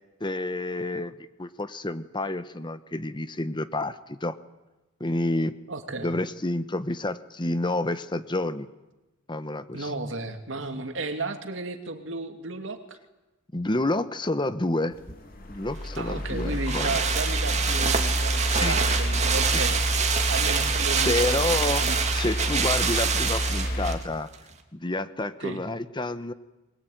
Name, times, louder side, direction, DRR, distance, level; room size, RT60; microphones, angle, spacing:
voice 1, 0.2-4.4 5.0-5.5 6.0-8.7 9.3-9.9 13.5-15.0 15.5-17.0 18.4-18.8 19.4-19.6 21.0-21.9 22.1-24.3 24.7-26.3, left 2 dB, 25° left, 12 dB, 1.0 m, -29 dB
voice 2, 5.7-6.1 9.7-13.0 16.0-19.8 20.3-22.0 25.4-25.6, right 3 dB, 65° right, 6 dB, 2.7 m, -34 dB
sound 1, 14.9-24.0, equal, 45° left, 3.2 m, -29 dB
sound 2, 15.9-24.0 24.3-24.4, right 6 dB, 35° right, 2.5 m, -26 dB
23.0 x 21.0 x 9.4 m, 1.0 s
head